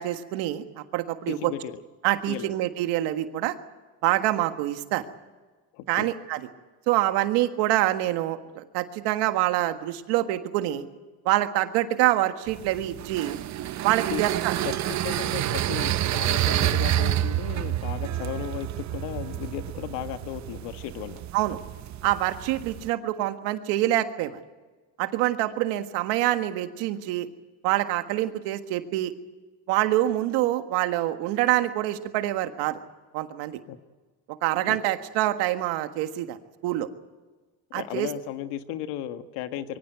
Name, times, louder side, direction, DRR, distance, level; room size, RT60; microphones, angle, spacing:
voice 1, 0.0-1.5 2.0-3.5 4.0-5.0 5.9-6.4 6.9-10.9 11.3-13.4 13.8-14.6 21.3-21.6 22.0-24.4 25.0-27.3 27.6-29.1 29.7-32.8 33.1-33.6 34.4-36.4 36.6-36.9 37.7-38.1, right 15 dB, 85° right, 8 dB, 1.7 m, -26 dB
voice 2, 1.3-1.8 2.3-2.5 5.7-6.1 14.1-14.2 14.6-21.2 33.7-33.8 34.6-34.8 37.7-39.8, left 12 dB, 85° left, 9 dB, 1.5 m, -35 dB
sound 1, 12.5-22.9, right 13 dB, 45° right, 0.7 m, -29 dB
23.5 x 15.5 x 9.2 m, 1.3 s
cardioid pair, 130°, 41 cm